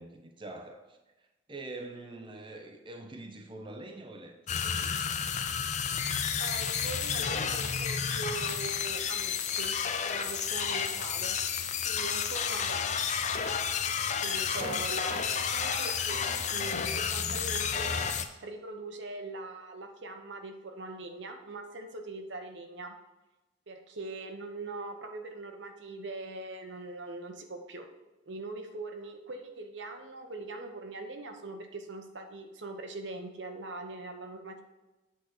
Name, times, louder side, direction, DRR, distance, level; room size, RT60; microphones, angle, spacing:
voice 1, 0.0-4.9 14.5-14.7, right 2 dB, 25° right, 3 dB, 0.6 m, -45 dB
sound 1, 4.5-18.2, left 7 dB, 40° left, 0.5 m, -31 dB
voice 2, 6.4-9.7 10.0-11.4 11.8-12.8 14.2-16.2 16.5-18.0 18.4-23.0 23.7-27.9 28.3-34.6, right 2 dB, 70° right, 4 dB, 1.0 m, -41 dB
8.4 x 4.1 x 6.4 m, 1.1 s
head